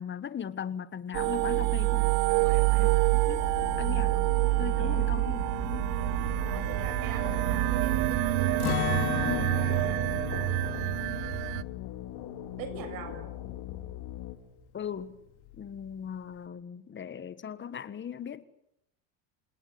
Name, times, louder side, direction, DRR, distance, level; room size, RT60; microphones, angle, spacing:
voice 1, 0.0-2.1 2.7-3.4 3.8-4.3 4.6-5.9 9.2-9.6 14.7-15.2 15.6-18.4, left 8 dB, 25° left, 1.5 m, -38 dB
sound 1, 1.1-11.6, right 22 dB, 75° right, 1.2 m, -27 dB
voice 2, 2.3-2.9 4.0-4.2 4.8-5.0 6.4-8.6 9.1-10.0 10.4-10.5 12.6-13.2, right 6 dB, 50° right, 7.0 m, -42 dB
sound 2, 3.3-14.4, left 13 dB, 65° left, 3.6 m, -40 dB
Acoustic guitar, 8.6-14.5 14.8-15.0 15.5-15.9, left 13 dB, 90° left, 3.6 m, -37 dB
27.5 x 19.0 x 8.4 m
supercardioid pair, 125°, 42 cm